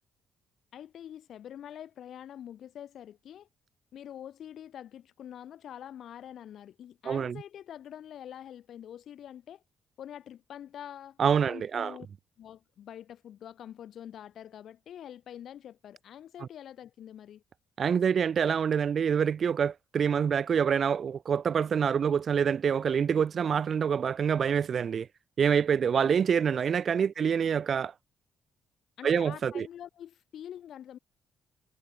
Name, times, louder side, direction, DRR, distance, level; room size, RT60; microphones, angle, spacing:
voice 1, 0.7-3.5 3.9-9.6 10.0-11.2 11.5-12.1 12.4-17.4 26.0-26.1 27.2-27.3 29.0-31.0, left 10 dB, 70° left, 1.1 m, -45 dB
voice 2, 7.0-7.4 11.2-11.9 17.8-25.1 25.4-27.9 29.0-29.7, right 7 dB, 50° right, 0.5 m, -26 dB
cardioid pair, 90°, 0 cm